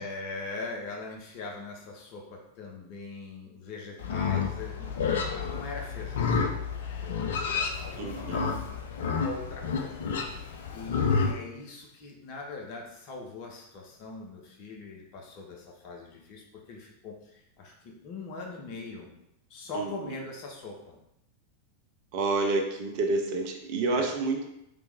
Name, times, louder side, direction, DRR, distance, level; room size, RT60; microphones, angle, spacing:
voice 1, 0.0-4.9 5.3-6.4 6.8-8.7 8.9-19.1 19.5-21.0 23.9-24.1, left 3 dB, 40° left, 0 dB, 0.9 m, -41 dB
Livestock farm animals working animals, 4.0-11.3, left 5 dB, 60° left, 0.4 m, -30 dB
voice 2, 8.0-8.5 19.7-20.1 22.1-24.4, right 3 dB, 45° right, 3 dB, 0.6 m, -29 dB
3.4 x 3.0 x 3.4 m, 0.81 s
figure-of-eight pair, 90°, 0 cm